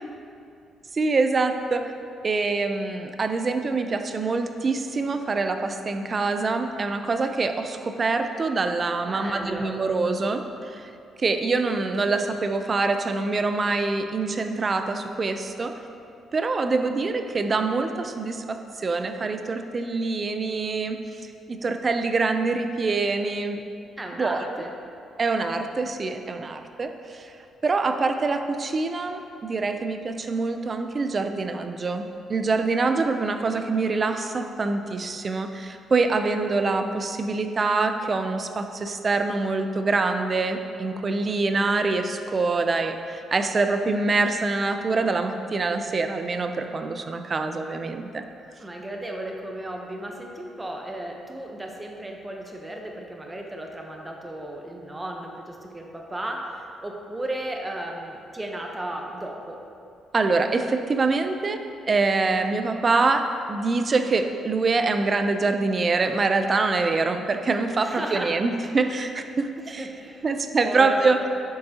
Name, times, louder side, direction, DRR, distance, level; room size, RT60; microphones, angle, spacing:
voice 1, 0.9-1.9 2.2-10.9 11.2-15.7 16.3-21.0 21.5-23.6 24.2-24.6 25.2-27.3 27.6-48.2 60.1-61.6 61.9-69.9 70.2-71.2, right 3 dB, 35° right, 7 dB, 0.4 m, -25 dB
voice 2, 9.0-9.8 24.0-24.7 48.6-59.6 67.8-68.4 69.7-70.3 70.6-71.3, right 1 dB, 15° right, 1 dB, 0.8 m, -35 dB
7.6 x 5.3 x 2.8 m, 2.6 s
cardioid pair, 90°, 0 cm